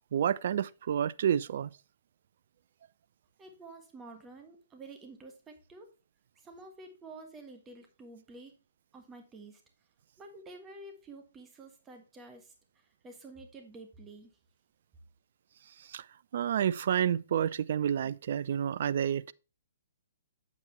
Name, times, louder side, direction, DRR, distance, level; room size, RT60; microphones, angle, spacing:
voice 1, 0.1-1.7 15.9-16.0 16.3-19.3, right 9 dB, 55° right, 0.4 m, -29 dB
voice 2, 3.4-5.9 6.3-8.6 8.9-9.6 10.2-14.3, right 2 dB, 15° right, 1.4 m, -50 dB
8.0 x 7.3 x 3.1 m
figure-of-eight pair, 125°, 0 cm